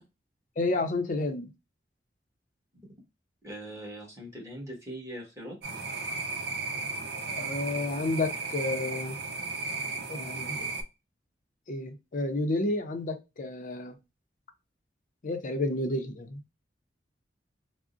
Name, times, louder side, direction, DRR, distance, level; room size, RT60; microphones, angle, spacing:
voice 1, 0.6-1.5 7.3-9.2 10.1-10.7 11.7-13.9 15.2-16.5, left 2 dB, 45° left, 0.6 m, -31 dB
voice 2, 3.4-5.6, right 1 dB, 15° right, 1.3 m, -41 dB
sound 1, 5.6-10.8, right 3 dB, 65° right, 0.7 m, -35 dB
3.6 x 2.1 x 2.4 m
head